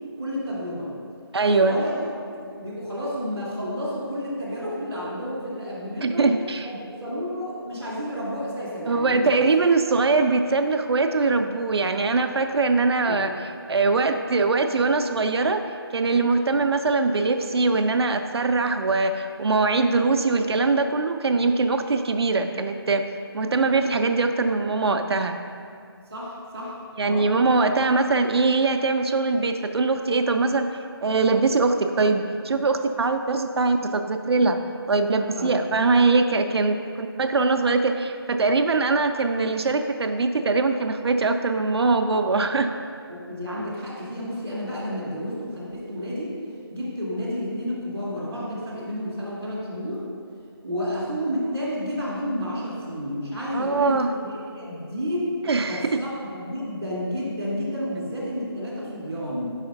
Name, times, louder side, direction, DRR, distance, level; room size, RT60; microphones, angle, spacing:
voice 1, 0.2-0.9 1.6-2.0 2.3-6.3 6.6-9.3 13.1-13.3 26.1-26.8 27.0-27.2 35.3-35.5 43.1-46.3 46.7-50.0 50.6-55.2 55.7-59.5, equal, 5° right, -15 dB, 0.4 m, -31 dB
voice 2, 1.3-1.8 6.0-6.7 8.9-13.3 13.7-15.6 15.9-23.1 23.3-25.4 27.0-30.7 31.0-34.6 34.9-42.7 53.5-54.1 55.4-56.0, right 3 dB, 75° right, 6 dB, 0.4 m, -22 dB
4.8 x 4.3 x 5.5 m, 2.4 s
figure-of-eight pair, 175°, 13 cm